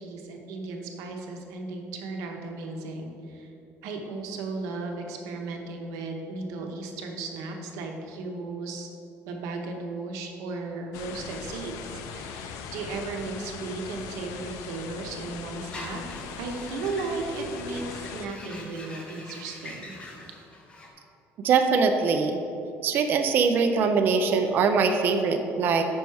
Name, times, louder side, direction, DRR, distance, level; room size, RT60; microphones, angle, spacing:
voice 1, 0.0-3.5 3.8-8.9 9.3-16.0 16.4-19.9, right 3 dB, 90° right, 2 dB, 0.7 m, -35 dB
sound 1, 10.9-18.3, left 6 dB, 90° left, 0.4 m, -40 dB
sound 2, 15.7-20.9, left 2 dB, 20° left, 0.6 m, -44 dB
voice 2, 21.4-22.4 22.8-25.9, right 5 dB, 40° right, 5 dB, 0.3 m, -22 dB
5.2 x 4.6 x 4.6 m, 2.8 s
cardioid pair, 180°, 5 cm